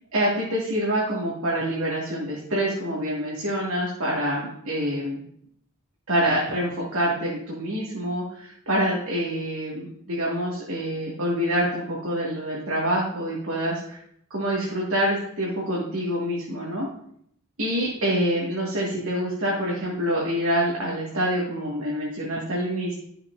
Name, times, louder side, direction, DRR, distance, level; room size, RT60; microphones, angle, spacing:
voice 1, 0.1-5.2 6.1-14.0 14.3-16.9 17.6-22.9, equal, 75° right, -6 dB, 2.1 m, -26 dB
12.0 x 7.2 x 2.6 m, 0.69 s
head